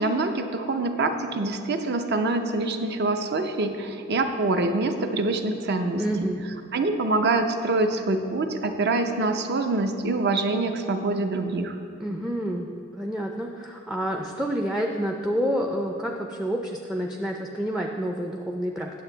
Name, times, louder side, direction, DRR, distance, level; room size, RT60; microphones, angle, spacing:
voice 1, 0.0-6.0 6.7-11.8, right 2 dB, 55° right, 6 dB, 0.6 m, -25 dB
voice 2, 6.0-6.4 11.9-12.7 13.0-18.9, equal, 5° right, 2 dB, 0.4 m, -28 dB
9.5 x 7.2 x 3.9 m, 2.5 s
head